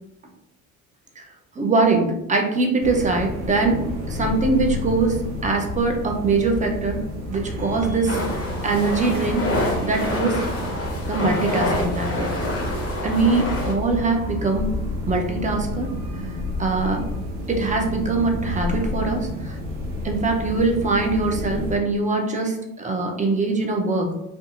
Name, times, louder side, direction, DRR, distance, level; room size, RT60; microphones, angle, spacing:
voice 1, 1.6-7.0 7.3-8.2 8.6-9.5 9.8-10.4 11.1-12.3 13.0-14.7 15.1-15.9 16.6-17.0 17.5-19.6 20.0-24.1, right 3 dB, 20° right, 2 dB, 0.6 m, -22 dB
sound 1, 2.8-21.8, left 1 dB, 80° right, 0.7 m, -30 dB
sound 2, 8.1-13.7, left 1 dB, 35° left, 0.8 m, -27 dB
2.6 x 2.3 x 2.6 m, 0.85 s
hypercardioid pair, 55°, 42 cm